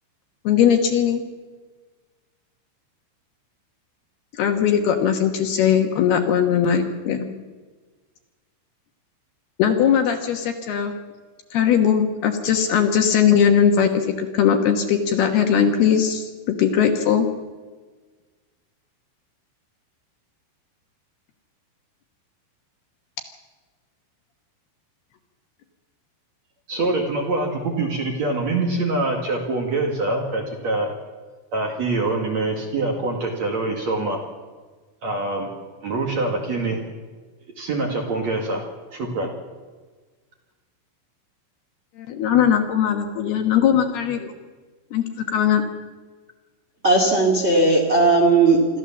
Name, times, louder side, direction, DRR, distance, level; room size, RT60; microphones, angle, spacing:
voice 1, 0.4-1.2 4.4-7.3 9.6-10.9 11.5-17.3 42.0-44.3 44.9-45.6, left 8 dB, 65° left, 4 dB, 2.8 m, -19 dB
voice 2, 26.7-30.9 31.5-34.2 35.0-35.5 35.8-36.8 37.6-38.6 38.9-39.3, right 2 dB, 50° right, 1 dB, 2.4 m, -24 dB
voice 3, 46.8-48.8, right 3 dB, 85° right, 1 dB, 0.6 m, -17 dB
25.5 x 14.0 x 7.3 m, 1.4 s
omnidirectional pair, 5.7 m